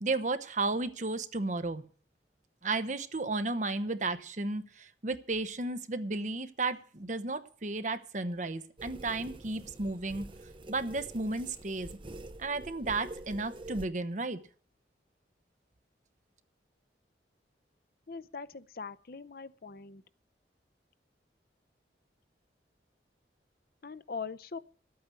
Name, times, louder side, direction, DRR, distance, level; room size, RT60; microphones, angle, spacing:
voice 1, 0.0-1.8 2.6-10.3 10.7-11.9 12.4-14.4, right 3 dB, 45° right, 10 dB, 1.0 m, -33 dB
sound 1, 8.8-13.9, right 2 dB, 30° right, 0.6 m, -46 dB
voice 2, 18.1-20.0 23.8-24.6, left 5 dB, 55° left, 15 dB, 0.6 m, -41 dB
12.0 x 8.7 x 8.3 m, 0.43 s
head